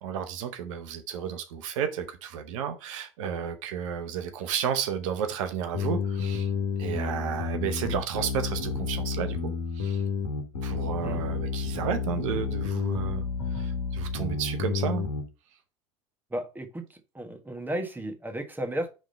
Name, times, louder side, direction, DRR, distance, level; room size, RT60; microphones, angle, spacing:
voice 1, 0.0-6.5 6.8-10.0 10.6-13.3 13.5-15.1, right 8 dB, 70° right, 0.8 m, -32 dB
sound 1, 5.7-15.2, left 5 dB, 85° left, 1.2 m, -30 dB
voice 2, 16.3-16.8 17.1-18.9, right 1 dB, 10° right, 1.4 m, -33 dB
5.2 x 3.7 x 5.3 m
hypercardioid pair, 80°, 17 cm